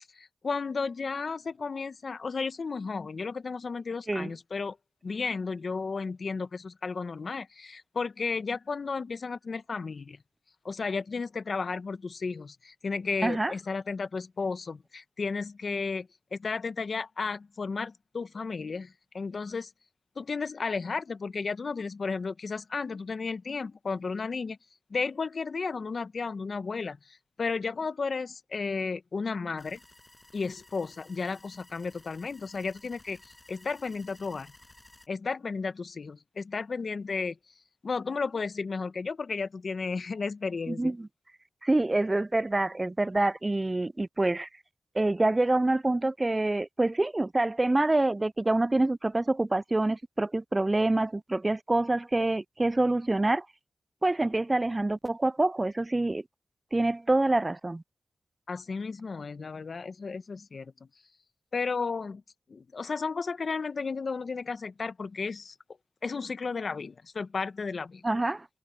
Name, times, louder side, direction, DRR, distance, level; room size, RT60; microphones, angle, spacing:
voice 1, 0.1-4.8 5.0-10.2 10.6-19.7 20.2-24.6 24.9-29.8 30.3-34.5 35.1-37.4 37.8-40.9 58.5-60.7 61.5-62.2 62.5-65.5 66.0-68.0, left 4 dB, 65° left, 1.0 m, -33 dB
voice 2, 13.2-13.5 40.7-41.1 41.6-44.5 45.0-53.5 54.0-56.2 56.7-57.8 68.0-68.5, right 2 dB, 30° right, 0.3 m, -26 dB
sound 1, 29.6-35.1, left 2 dB, 25° left, 8.0 m, -56 dB
cardioid pair, 45°, 0 cm